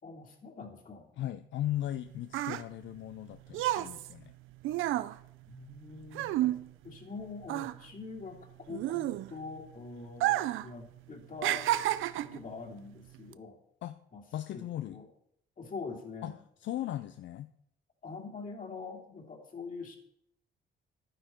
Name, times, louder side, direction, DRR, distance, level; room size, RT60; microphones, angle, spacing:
voice 1, 0.0-1.1 5.5-6.5 6.8-11.7 12.2-13.6 14.1-14.2 14.5-15.1 15.6-16.4 18.0-20.0, left 4 dB, 45° left, 0 dB, 2.8 m, -44 dB
voice 2, 1.2-4.3 13.8-14.0 14.3-15.0 16.2-17.5, left 13 dB, 70° left, 11 dB, 0.6 m, -37 dB
sound 1, 1.8-7.2 7.4-9.6 10.1-10.7 11.0-12.4 13.1-13.3, right 15 dB, 85° right, 0.5 m, -31 dB
11.5 x 9.9 x 4.5 m, 0.73 s
cardioid pair, 90°, 20 cm